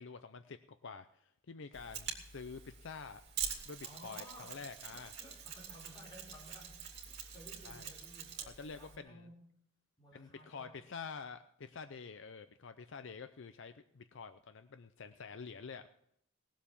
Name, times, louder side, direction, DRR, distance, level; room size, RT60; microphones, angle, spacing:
voice 1, 0.0-3.2 3.6-5.1 7.6-7.9 8.6-9.3 10.1-15.9, left 5 dB, 60° left, 10 dB, 0.6 m, -48 dB
Mechanisms, 1.7-9.0, right 8 dB, 50° right, 2.5 m, -45 dB
voice 2, 3.8-9.5 10.0-10.9, equal, 20° left, -3 dB, 4.6 m, -56 dB
19.0 x 7.3 x 7.0 m, 0.72 s
head